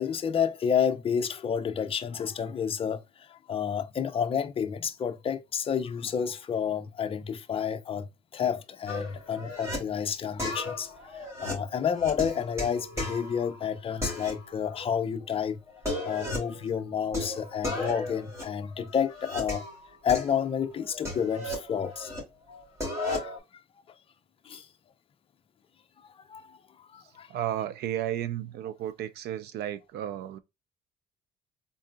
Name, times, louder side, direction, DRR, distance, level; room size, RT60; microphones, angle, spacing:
voice 1, 0.0-8.1 8.3-10.9 11.4-15.6 16.0-19.7 20.0-22.1 23.0-23.3 24.4-24.7 26.0-26.6 26.9-27.3, left 7 dB, 35° left, 0.5 m, -30 dB
sound 1, 8.9-9.8 10.4-13.6 14.0-14.9 15.2-15.3 15.7-16.6 17.1-19.8 20.1-22.2 22.5-23.4, left 1 dB, 15° right, 2.4 m, -35 dB
voice 2, 27.3-30.4, right 11 dB, 75° right, 0.5 m, -33 dB
3.8 x 3.7 x 2.2 m
cardioid pair, 110°, 17 cm